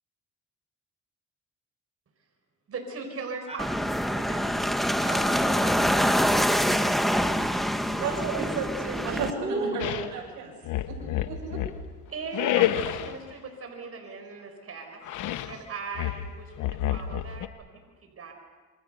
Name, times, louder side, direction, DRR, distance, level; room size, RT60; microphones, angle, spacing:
voice 1, 2.7-4.6 12.1-18.3, right 4 dB, 50° right, 3 dB, 4.8 m, -39 dB
sound 1, 3.6-9.3, equal, ahead, 1.5 m, -25 dB
voice 2, 5.0-7.4 9.4-9.8, right 2 dB, 20° right, 5 dB, 5.7 m, -36 dB
voice 3, 7.8-10.5 10.9-11.0 11.3-11.6, right 4 dB, 80° right, -2 dB, 6.6 m, -32 dB
sound 2, 9.8-10.1 10.6-11.8 12.3-13.2 15.0-15.6 16.0-17.5, left 12 dB, 85° left, 1.2 m, -29 dB
28.0 x 25.0 x 6.9 m, 1.4 s
cardioid pair, 90°, 30 cm